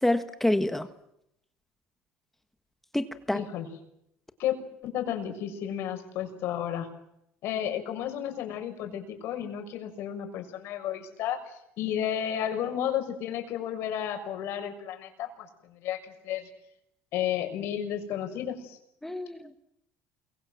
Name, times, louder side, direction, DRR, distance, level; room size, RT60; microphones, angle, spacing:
voice 1, 0.0-0.9 2.9-3.4 19.0-19.5, left 1 dB, 5° left, 1.5 m, -27 dB
voice 2, 3.3-3.7 4.4-4.5 4.8-6.9 7.4-16.5 17.1-18.8, left 10 dB, 60° left, 6.1 m, -32 dB
29.0 x 24.0 x 7.7 m
cardioid pair, 120°, 5 cm